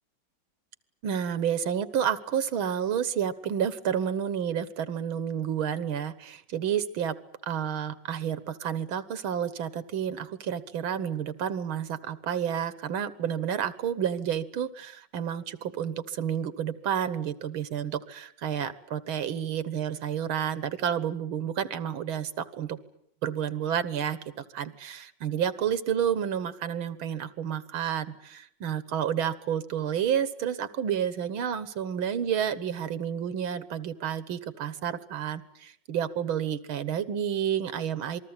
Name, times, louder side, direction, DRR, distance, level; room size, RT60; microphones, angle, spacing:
voice 1, 1.0-7.2 7.5-22.8 23.2-38.2, right 9 dB, 75° right, 15 dB, 2.0 m, -30 dB
27.0 x 20.5 x 8.9 m, 0.68 s
omnidirectional pair, 2.2 m